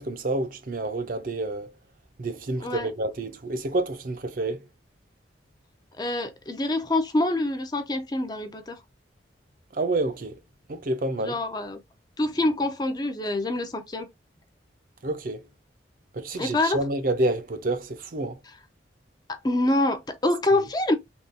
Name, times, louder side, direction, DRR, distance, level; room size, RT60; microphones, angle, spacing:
voice 1, 0.0-1.7 2.2-4.7 9.7-10.4 10.7-11.4 15.0-15.5 16.1-18.4 20.6-20.7, right 2 dB, 50° right, 0.5 m, -28 dB
voice 2, 6.0-8.8 11.2-11.8 12.2-14.1 16.3-16.8 19.3-20.9, left 2 dB, 20° left, 0.4 m, -26 dB
3.6 x 2.3 x 2.6 m
head